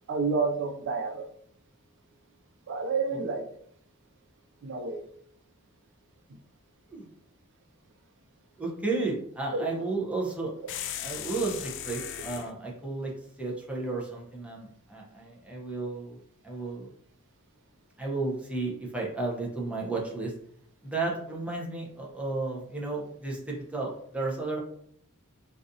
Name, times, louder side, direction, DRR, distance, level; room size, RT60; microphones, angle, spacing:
voice 1, 0.1-1.3 2.7-3.6 4.6-5.0 6.3-6.4 9.5-9.7, right 4 dB, 55° right, 4 dB, 0.4 m, -29 dB
voice 2, 8.6-10.5 11.0-13.1 13.4-16.2 16.4-16.9 18.0-20.3 20.8-24.6, right 3 dB, 5° right, -3 dB, 0.7 m, -33 dB
sound 1, 10.7-12.5, left 10 dB, 60° left, 0.3 m, -37 dB
3.9 x 2.5 x 2.7 m, 0.64 s
head